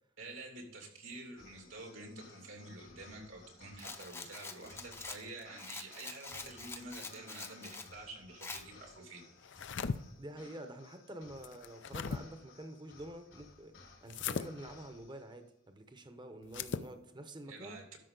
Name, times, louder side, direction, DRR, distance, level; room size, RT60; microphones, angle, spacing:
voice 1, 0.2-9.2 17.5-18.0, right 2 dB, 85° right, 2 dB, 2.8 m, -49 dB
sound 1, 1.4-15.4, left 3 dB, 85° left, 4.0 m, -59 dB
Rattle, 3.8-7.9 8.4-8.6, left 3 dB, 15° left, 0.7 m, -46 dB
sound 2, 9.4-10.0 11.4-12.2 14.1-14.5 16.5-16.9, left 5 dB, 65° left, 0.5 m, -37 dB
voice 2, 10.2-17.8, right 1 dB, 25° right, 7 dB, 0.9 m, -48 dB
12.5 x 5.8 x 3.9 m, 0.82 s
head